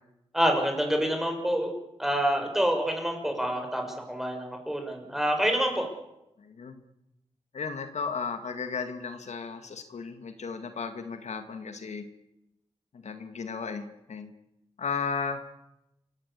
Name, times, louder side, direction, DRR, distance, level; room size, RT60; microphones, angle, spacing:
voice 1, 0.3-1.7 2.0-5.9, equal, 5° right, 3 dB, 5.9 m, -27 dB
voice 2, 6.4-6.8 7.5-12.1 12.9-14.3 14.8-15.4, left 5 dB, 80° left, 8 dB, 2.1 m, -35 dB
28.0 x 18.0 x 8.4 m, 0.88 s
wide cardioid pair, 110°, 12 cm